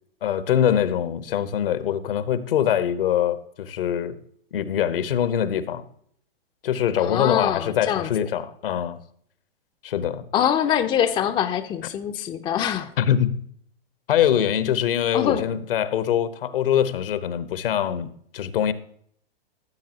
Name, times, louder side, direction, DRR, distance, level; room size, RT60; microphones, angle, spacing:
voice 1, 0.2-4.2 4.5-5.8 6.6-9.0 9.8-10.3 13.0-13.4 14.1-18.7, left 9 dB, 65° left, 1.0 m, -23 dB
voice 2, 7.0-8.1 10.3-12.9 15.1-15.5, left 9 dB, 15° left, 0.5 m, -24 dB
15.0 x 7.4 x 2.9 m
hypercardioid pair, 120°, 30 cm